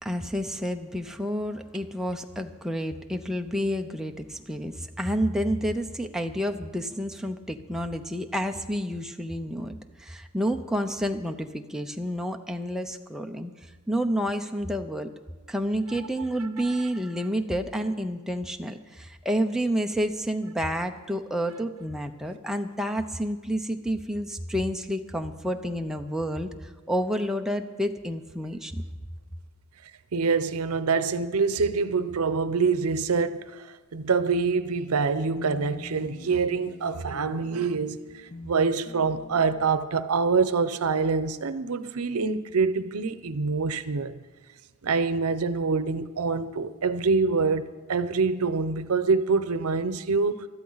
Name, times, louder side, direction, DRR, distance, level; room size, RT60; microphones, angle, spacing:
voice 1, 0.0-13.5 13.9-15.1 15.5-28.8, equal, ahead, 0.6 m, -29 dB
voice 2, 16.4-16.8 30.1-44.2 44.8-50.5, right 4 dB, 80° right, 0.7 m, -26 dB
sound 1, 35.4-39.7, left 3 dB, 40° left, 1.1 m, -43 dB
20.5 x 13.0 x 4.0 m
head